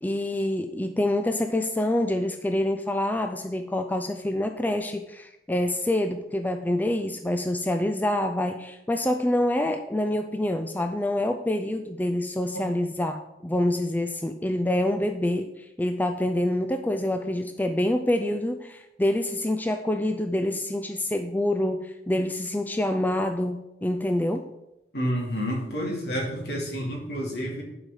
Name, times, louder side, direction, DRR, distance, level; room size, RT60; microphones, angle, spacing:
voice 1, 0.0-24.5, left 1 dB, 10° left, 7 dB, 0.4 m, -26 dB
voice 2, 24.9-27.6, equal, 65° left, -1 dB, 2.7 m, -29 dB
11.5 x 4.9 x 5.4 m, 0.93 s
head